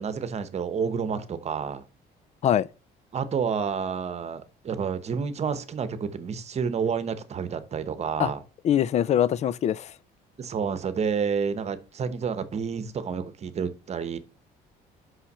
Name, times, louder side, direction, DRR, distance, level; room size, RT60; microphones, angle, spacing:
voice 1, 0.0-1.8 3.1-8.4 10.4-14.2, right 6 dB, 40° right, 1.0 m, -29 dB
voice 2, 8.6-9.9, left 10 dB, 40° left, 0.4 m, -23 dB
5.7 x 5.7 x 5.5 m
cardioid pair, 110°, 17 cm